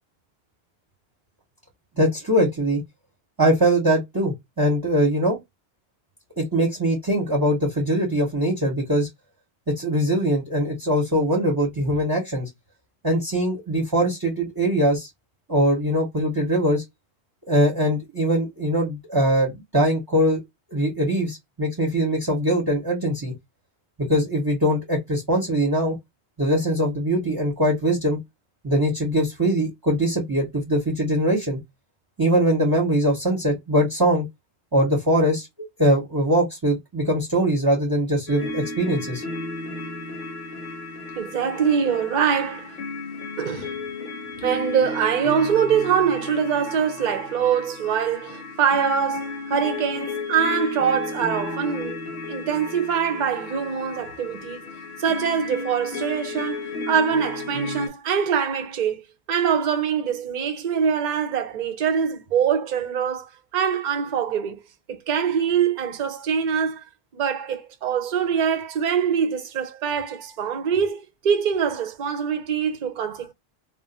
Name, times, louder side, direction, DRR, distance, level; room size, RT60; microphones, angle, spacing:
voice 1, 2.0-2.8 3.4-5.4 6.4-9.1 9.8-12.5 13.0-15.1 15.5-16.8 17.5-20.4 20.7-23.3 24.1-26.0 26.4-28.2 28.6-31.6 32.2-34.3 34.7-35.5 35.8-39.2, right 1 dB, 25° right, 0.8 m, -22 dB
sound 1, 38.3-57.9, left 3 dB, 65° left, 0.9 m, -33 dB
voice 2, 41.2-42.7 43.4-43.7 44.4-52.0 52.3-54.6 55.0-59.0 59.3-64.6 64.9-66.8 67.1-73.3, right 7 dB, 55° right, 0.7 m, -24 dB
2.4 x 2.1 x 3.9 m
omnidirectional pair, 1.0 m